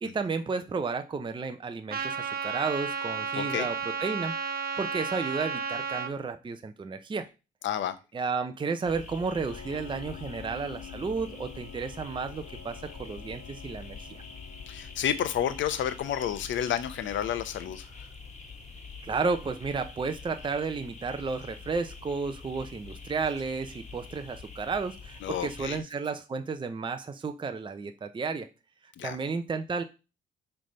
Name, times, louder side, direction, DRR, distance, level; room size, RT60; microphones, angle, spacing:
voice 1, 0.0-4.3 4.8-7.3 8.1-14.2 19.0-28.5 28.8-29.8, right 4 dB, 25° right, 8 dB, 0.6 m, -32 dB
Trumpet, 1.9-6.1, right 5 dB, 50° right, 1.0 m, -32 dB
voice 2, 3.3-3.7 7.6-7.9 14.7-17.9 25.2-25.8 29.0-29.2, left 10 dB, 70° left, 13 dB, 0.9 m, -30 dB
sound 1, 8.8-25.8, left 4 dB, 35° left, 1.7 m, -45 dB
Piano, 9.5-15.9, left 10 dB, 85° left, 1.4 m, -49 dB
7.4 x 3.4 x 5.3 m, 0.30 s
cardioid pair, 90°, 20 cm